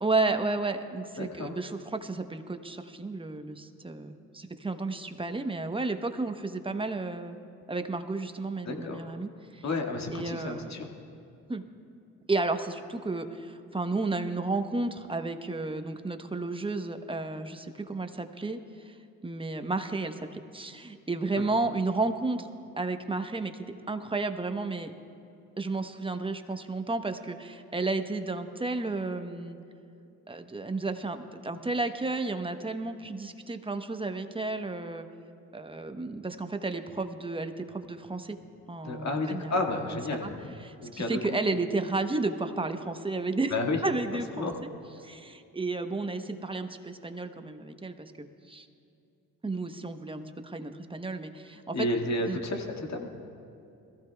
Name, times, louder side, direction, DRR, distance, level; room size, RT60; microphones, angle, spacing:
voice 1, 0.0-7.4 7.7-9.6 10.1-10.8 11.5-11.7 12.3-18.9 19.2-22.5 22.8-23.5 23.9-24.9 25.6-29.6 30.3-35.1 35.5-38.4 38.7-40.3 40.6-43.6 43.8-44.5 45.0-48.7 49.4-52.4, right 3 dB, 15° right, 7 dB, 1.0 m, -32 dB
voice 2, 1.2-1.5 8.7-9.0 9.6-10.9 38.8-41.2 43.5-43.8 44.4-44.6 51.7-53.2, left 2 dB, 45° left, 2 dB, 2.0 m, -31 dB
22.0 x 15.0 x 2.3 m, 2.6 s
supercardioid pair, 65°, 37 cm